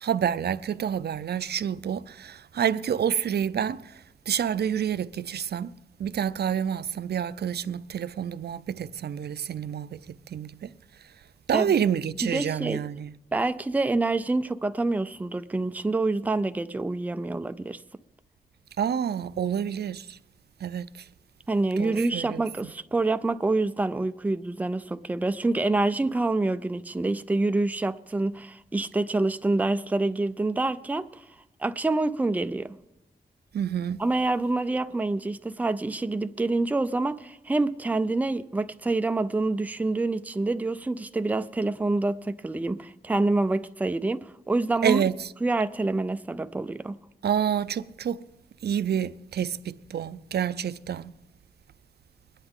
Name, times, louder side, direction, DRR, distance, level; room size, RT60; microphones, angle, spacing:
voice 1, 0.0-3.8 4.3-5.7 6.0-10.0 10.3-10.7 11.5-13.1 18.8-20.0 20.6-20.9 21.8-22.4 33.5-34.0 44.8-45.1 47.2-48.2 48.6-51.1, right 8 dB, 75° right, 0.4 m, -28 dB
voice 2, 12.2-12.8 13.3-17.8 21.5-31.1 31.6-32.8 34.0-45.1 45.4-47.0, right 2 dB, 10° right, 0.4 m, -27 dB
21.5 x 9.8 x 3.7 m
wide cardioid pair, 130°, 17 cm